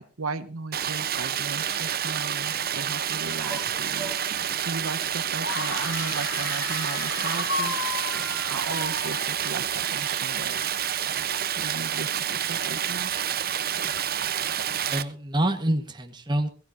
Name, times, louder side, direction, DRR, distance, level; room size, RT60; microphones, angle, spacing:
voice 1, 0.0-13.1, right 3 dB, 75° right, 9 dB, 1.1 m, -37 dB
Stream, 0.7-15.0, right 9 dB, 45° right, 0.8 m, -28 dB
sound 1, 3.3-11.6, right 3 dB, ahead, 4.2 m, -47 dB
sound 2, 5.4-9.8, left 4 dB, 60° left, 1.9 m, -33 dB
voice 2, 14.7-16.5, right 1 dB, 20° right, 5 dB, 1.4 m, -27 dB
22.0 x 15.5 x 2.7 m, 0.36 s
head